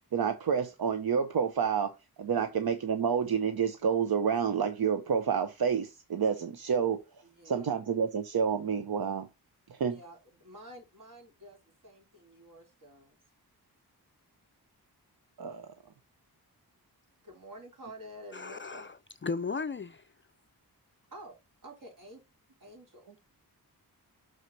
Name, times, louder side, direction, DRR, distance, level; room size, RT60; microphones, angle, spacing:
voice 1, 0.1-7.0 7.4-9.3 9.7-10.0 15.4-15.7, right 7 dB, 70° right, 0.9 m, -29 dB
voice 2, 7.2-7.8 9.9-13.2 17.2-18.9 21.1-21.4 21.6-22.2 22.6-23.1, right 1 dB, 55° right, 3.8 m, -50 dB
voice 3, 18.3-20.1, left 4 dB, 30° left, 0.4 m, -36 dB
6.5 x 4.7 x 4.1 m
wide cardioid pair, 100°, 38 cm